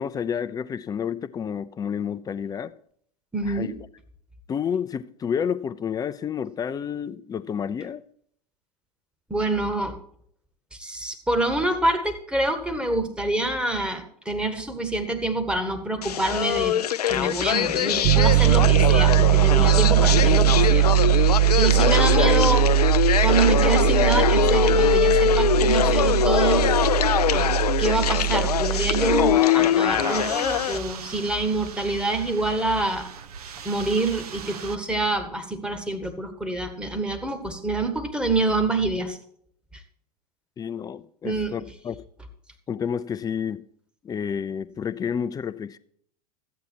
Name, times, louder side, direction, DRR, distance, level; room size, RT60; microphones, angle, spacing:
voice 1, 0.0-2.7 3.5-3.7 4.5-8.0 40.6-42.0 42.7-43.6 44.0-45.8, left 7 dB, 20° left, 0.5 m, -30 dB
voice 2, 3.3-3.8 9.3-10.0 10.7-16.8 17.1-20.9 21.2-22.7 23.2-26.7 27.3-27.5 27.8-33.1 33.6-39.2 41.2-41.5, right 2 dB, 5° right, 1.3 m, -26 dB
sound 1, 16.0-30.8, left 10 dB, 80° left, 0.4 m, -22 dB
Piano, 18.0-29.4, right 16 dB, 40° right, 0.5 m, -20 dB
sound 2, 28.7-34.8, right 7 dB, 75° right, 0.9 m, -39 dB
13.0 x 8.4 x 4.5 m
figure-of-eight pair, 85°, 20 cm